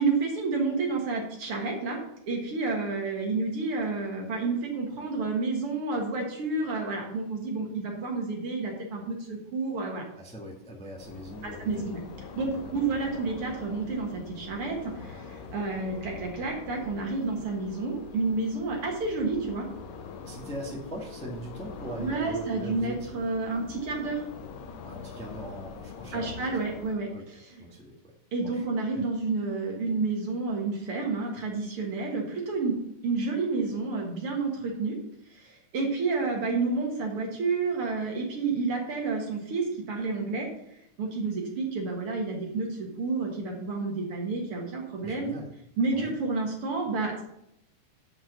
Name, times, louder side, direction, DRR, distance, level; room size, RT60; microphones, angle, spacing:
voice 1, 0.0-2.0 2.3-10.0 11.4-12.0 12.4-19.7 22.0-24.2 26.1-27.6 28.3-32.8 33.0-35.0 35.3-40.5 41.0-45.3 45.8-47.2, right 3 dB, 50° right, 1 dB, 2.2 m, -30 dB
voice 2, 10.2-12.0 12.4-12.7 20.2-23.2 24.8-26.7 27.1-27.9 28.5-28.6 45.0-45.5 45.9-46.1, equal, 5° left, -2 dB, 0.6 m, -41 dB
sound 1, 11.0-27.0, left 5 dB, 85° left, 2.5 m, -44 dB
7.4 x 5.3 x 6.9 m, 0.79 s
omnidirectional pair, 3.7 m